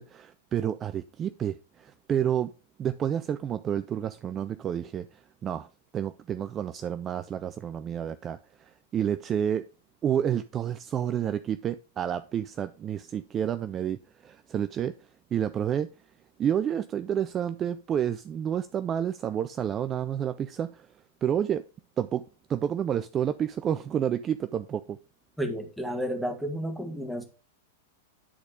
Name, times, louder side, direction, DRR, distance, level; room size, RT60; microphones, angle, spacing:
voice 1, 0.0-2.5 2.8-5.7 5.9-9.7 10.0-15.0 15.3-15.9 16.4-20.9 21.2-21.7 22.0-25.0, right 9 dB, 30° right, 0.4 m, -30 dB
voice 2, 25.4-27.2, equal, ahead, 1.8 m, -31 dB
10.0 x 4.2 x 4.9 m
figure-of-eight pair, 95°, 0 cm